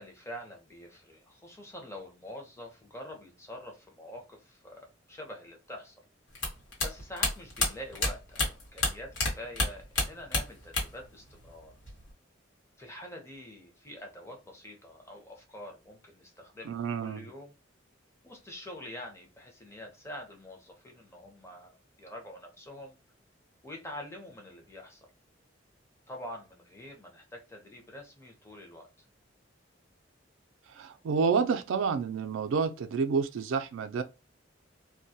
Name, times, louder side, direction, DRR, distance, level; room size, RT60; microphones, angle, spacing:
voice 1, 0.0-5.9 6.8-11.7 12.8-17.5 18.2-23.0 23.6-25.1 26.1-28.9, left 1 dB, 15° left, 0.6 m, -46 dB
sound 1, 6.4-9.3 9.6-11.1 11.3-12.1, left 2 dB, 75° left, 1.1 m, -29 dB
voice 2, 16.7-17.3 30.7-34.0, right 5 dB, 85° right, 0.4 m, -29 dB
2.2 x 2.1 x 2.6 m
head